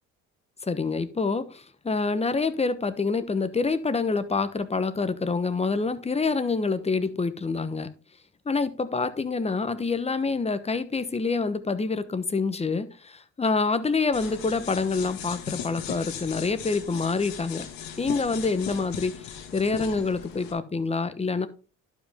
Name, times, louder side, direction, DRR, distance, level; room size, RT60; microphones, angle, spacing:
voice 1, 0.6-7.9 8.5-17.7 18.0-21.5, left 4 dB, 20° left, 1.0 m, -27 dB
sound 1, 14.1-20.5, left 9 dB, 75° left, 1.7 m, -38 dB
11.5 x 5.3 x 3.5 m
supercardioid pair, 75°, 35 cm